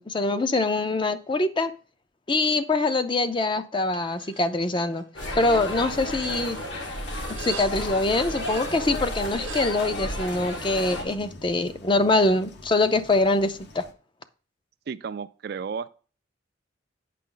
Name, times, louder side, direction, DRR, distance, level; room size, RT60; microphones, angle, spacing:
voice 1, 0.0-1.7 2.3-5.0 5.4-6.6 7.4-13.8, left 2 dB, 25° left, 0.5 m, -24 dB
sound 1, 3.9-4.5 4.8-5.3 5.7-9.7, right 5 dB, 75° right, 0.8 m, -42 dB
sound 2, 5.1-11.0, left 1 dB, 75° left, 2.0 m, -32 dB
sound 3, 5.3-13.9, left 2 dB, 60° left, 0.9 m, -47 dB
voice 2, 14.9-15.9, right 6 dB, 55° right, 0.3 m, -33 dB
8.4 x 5.8 x 3.8 m
head